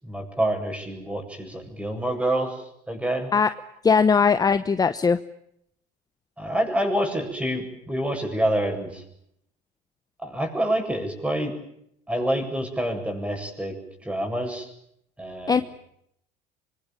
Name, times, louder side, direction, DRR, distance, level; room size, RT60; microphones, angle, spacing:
voice 1, 0.0-3.3 6.4-9.0 10.2-11.5 12.1-13.7 14.0-14.7 15.2-15.6, right 1 dB, 5° right, 5 dB, 7.9 m, -27 dB
voice 2, 3.8-5.2 15.5-15.6, left 5 dB, 20° left, 12 dB, 1.0 m, -19 dB
25.0 x 23.5 x 9.1 m, 0.75 s
supercardioid pair, 105°, 17 cm